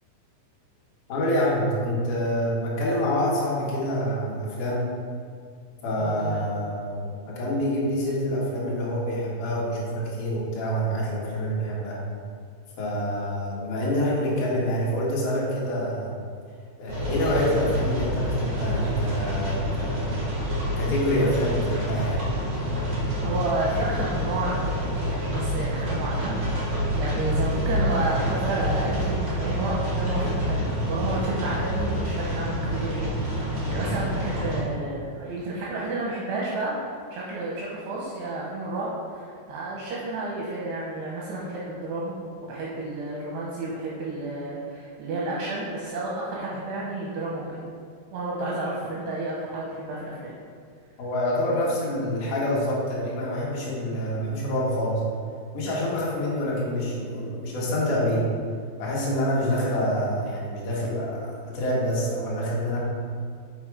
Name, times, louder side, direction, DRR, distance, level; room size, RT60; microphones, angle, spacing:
voice 1, 1.1-4.9 5.8-12.0 12.8-16.2 16.8-20.2 20.8-22.2 51.0-55.0 55.5-58.3 58.8-62.8, equal, 55° left, -6 dB, 2.5 m, -26 dB
voice 2, 6.0-6.4 23.2-42.2 42.4-47.6 48.1-50.3, right 2 dB, 75° right, -5 dB, 2.7 m, -31 dB
sound 1, 16.9-34.6, equal, 45° right, 1.4 m, -27 dB
7.0 x 5.6 x 4.9 m, 2.1 s
omnidirectional pair, 5.7 m